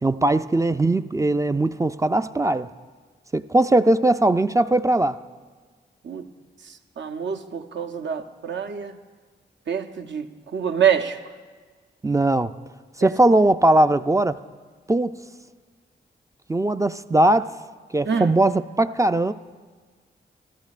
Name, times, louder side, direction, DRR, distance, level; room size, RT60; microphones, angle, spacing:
voice 1, 0.0-2.7 3.3-5.2 12.0-12.5 13.0-14.4 14.9-15.2 16.5-17.5 17.9-19.3, right 2 dB, 15° right, 11 dB, 0.3 m, -20 dB
voice 2, 7.0-8.9 9.7-10.2 10.5-11.2 13.0-13.1 18.1-18.3, right 8 dB, 70° right, 7 dB, 0.7 m, -25 dB
13.5 x 13.5 x 2.4 m, 1.5 s
cardioid pair, 45°, 20 cm